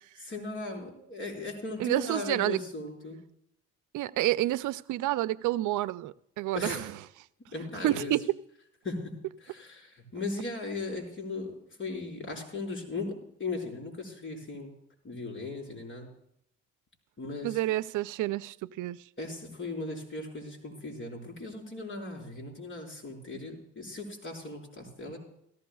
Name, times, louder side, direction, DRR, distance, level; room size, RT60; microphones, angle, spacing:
voice 1, 0.2-3.2 6.5-6.9 7.5-8.1 8.8-9.1 9.4-11.5 11.8-14.7 15.0-16.1 17.2-17.6 19.2-25.2, left 3 dB, 40° left, 5.0 m, -37 dB
voice 2, 1.8-2.6 3.9-6.9 7.8-8.2 17.4-19.0, right 15 dB, 80° right, 0.5 m, -29 dB
17.5 x 15.0 x 2.3 m
cardioid pair, 90°, 30 cm